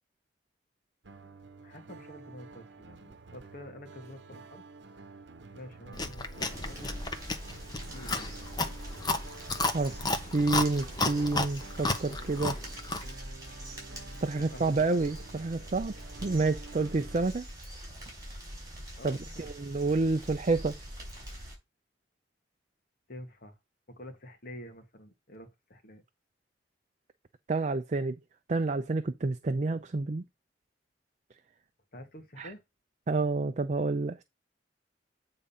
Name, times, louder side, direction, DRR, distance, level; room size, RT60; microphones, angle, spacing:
sound 1, 1.0-17.2, right 3 dB, 85° right, 0.8 m, -50 dB
voice 1, 1.6-4.7 5.5-7.4 7.9-8.6 14.4-14.8 19.0-19.5 23.1-23.6 23.9-26.0 31.9-32.6, left 1 dB, 55° left, 1.5 m, -48 dB
Chewing mastication, 5.9-13.1, left 2 dB, 25° left, 0.9 m, -33 dB
sound 2, 6.4-21.6, equal, 20° right, 5.0 m, -44 dB
voice 2, 9.7-12.6 14.2-15.9 16.2-17.5 19.0-20.7 27.5-28.2 28.5-30.2 32.4-32.5 33.1-34.2, right 3 dB, 40° right, 0.5 m, -29 dB
8.6 x 3.7 x 5.5 m
head